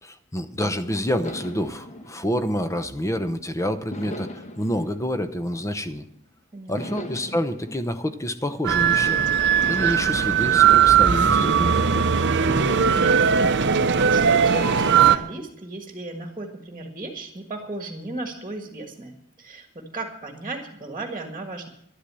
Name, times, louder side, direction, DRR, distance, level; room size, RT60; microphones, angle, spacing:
voice 1, 0.0-6.0 6.7-9.3 9.7-12.2, equal, 15° left, 10 dB, 0.8 m, -28 dB
sound 1, 1.2-3.3 3.9-6.2 6.8-9.0 9.6-11.9 12.5-13.6, left 1 dB, 30° left, 1.2 m, -40 dB
voice 2, 6.5-6.9 12.9-21.7, right 2 dB, 20° right, 3 dB, 1.6 m, -35 dB
sound 2, 8.6-15.2, right 7 dB, 55° right, 0.7 m, -19 dB
11.5 x 11.5 x 7.6 m, 0.74 s
head